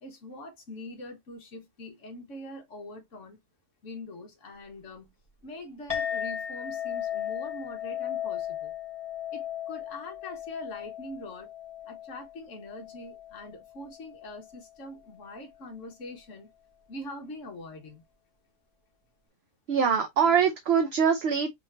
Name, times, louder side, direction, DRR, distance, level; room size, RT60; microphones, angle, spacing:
voice 1, 0.0-3.4 3.8-5.1 5.4-8.7 9.3-11.5 11.9-16.5 16.9-18.0, left 1 dB, 55° left, 1.7 m, -43 dB
Chink clink, 5.9-14.6, left 10 dB, 25° left, 2.4 m, -36 dB
voice 2, 19.7-21.5, right 7 dB, 55° right, 0.8 m, -23 dB
4.7 x 3.6 x 2.7 m
omnidirectional pair, 1.6 m